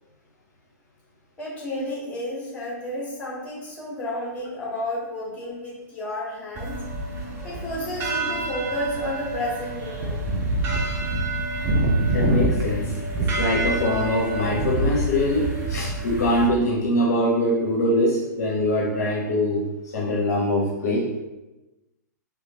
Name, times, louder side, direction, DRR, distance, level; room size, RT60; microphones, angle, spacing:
voice 1, 1.4-6.7 7.4-10.2 10.6-10.7, left 1 dB, 15° left, -5 dB, 1.2 m, -31 dB
sound 1, 6.6-16.5, right 2 dB, 25° right, 0.5 m, -26 dB
voice 2, 12.1-19.6 19.9-21.1, left 1 dB, 60° left, -2 dB, 0.6 m, -23 dB
2.8 x 2.3 x 2.8 m, 1.0 s
figure-of-eight pair, 110°, 10 cm